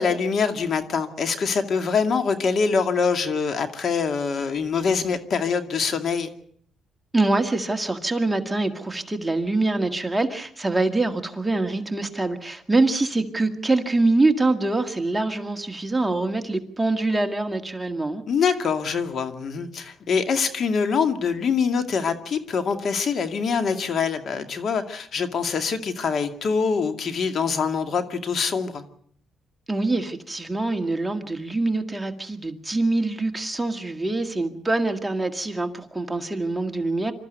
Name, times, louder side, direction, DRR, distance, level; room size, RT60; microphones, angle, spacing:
voice 1, 0.0-6.3 18.3-28.8, left 5 dB, 55° left, 7 dB, 2.3 m, -24 dB
voice 2, 7.1-18.2 29.7-37.1, right 2 dB, 10° right, 5 dB, 1.9 m, -24 dB
26.0 x 13.5 x 8.1 m, 0.62 s
cardioid pair, 90°, 0 cm